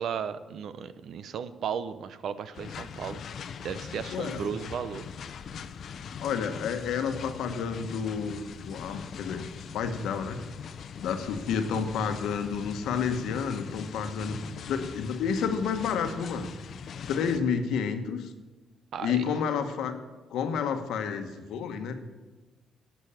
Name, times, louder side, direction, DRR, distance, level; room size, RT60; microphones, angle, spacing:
voice 1, 0.0-3.2 3.6-5.1 18.9-19.3, right 7 dB, 65° right, 13 dB, 0.7 m, -35 dB
sound 1, 2.5-17.4, left 7 dB, 60° left, 0.6 m, -41 dB
voice 2, 4.1-4.5 6.2-9.4 9.7-10.4 11.0-14.4 14.7-16.5 17.1-18.3 19.0-20.0 20.3-22.0, left 6 dB, 80° left, 7 dB, 1.2 m, -30 dB
11.5 x 6.2 x 8.7 m, 1.2 s
cardioid pair, 90°, 0 cm